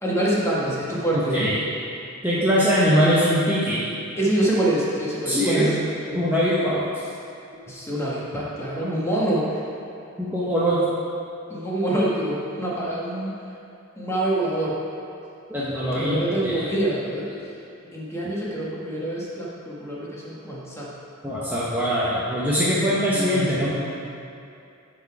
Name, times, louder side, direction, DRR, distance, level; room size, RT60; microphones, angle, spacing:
voice 1, 0.0-1.5 4.2-5.7 7.7-9.5 11.5-13.3 14.0-14.8 15.9-17.3 17.9-20.9 23.1-23.7, right 1 dB, 10° left, -6 dB, 1.3 m, -25 dB
voice 2, 1.1-1.6 2.2-3.8 5.3-5.7 6.1-6.8 10.2-10.8 15.5-16.7 18.2-18.4 21.2-23.7, equal, 10° right, -9 dB, 0.8 m, -22 dB
8.9 x 4.1 x 4.7 m, 2.6 s
head